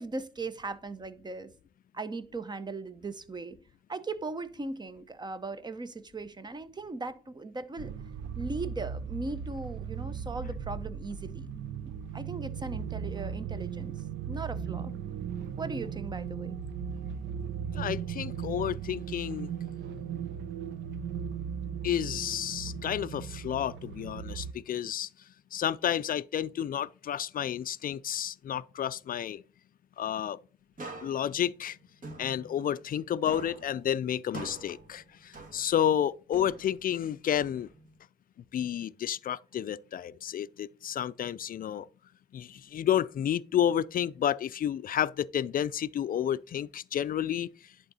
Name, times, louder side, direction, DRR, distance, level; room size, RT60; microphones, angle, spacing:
voice 1, 0.0-1.5 1.9-3.6 3.9-7.9 8.4-11.5 12.1-13.9 14.3-14.9 15.6-16.6, right 3 dB, 20° right, 0.7 m, -38 dB
sound 1, 7.8-24.5, right 7 dB, 70° right, 0.7 m, -37 dB
voice 2, 17.7-19.5 21.8-25.1 25.5-29.4 30.0-30.4 31.0-31.8 32.2-37.7 38.5-41.9 42.3-47.5, left 10 dB, 45° left, 0.4 m, -31 dB
sound 2, 30.8-33.0 33.3-35.9 36.3-38.0, right 2 dB, 40° right, 2.2 m, -46 dB
10.5 x 3.7 x 4.1 m
cardioid pair, 90°, 20 cm